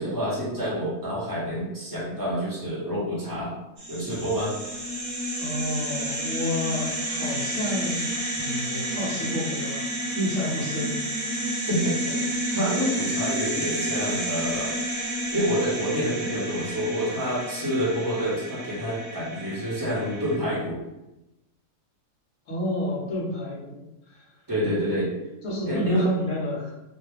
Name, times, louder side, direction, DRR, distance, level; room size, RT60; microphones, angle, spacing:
voice 1, 0.0-3.5 3.9-4.5 11.7-15.0 15.3-20.8 24.5-25.1 25.6-26.0, equal, 15° right, -8 dB, 0.9 m, -28 dB
sound 1, 3.8-20.4, right 1 dB, 45° right, 0.9 m, -30 dB
voice 2, 5.4-8.1 8.4-9.9 10.1-11.5 22.5-23.8 24.1-24.3 25.4-26.7, left 1 dB, 60° left, -5 dB, 1.4 m, -30 dB
3.2 x 2.2 x 3.3 m, 0.94 s
omnidirectional pair, 1.6 m